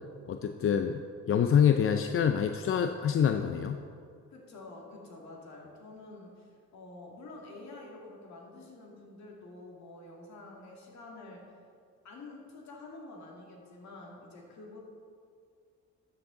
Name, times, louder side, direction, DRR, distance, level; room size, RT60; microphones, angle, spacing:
voice 1, 0.3-1.0 1.3-3.8, left 8 dB, 45° left, 7 dB, 0.5 m, -26 dB
voice 2, 4.3-11.5 12.0-14.8, left 2 dB, 65° left, -1 dB, 2.3 m, -48 dB
13.0 x 7.2 x 3.9 m, 2.2 s
cardioid pair, 90°, 30 cm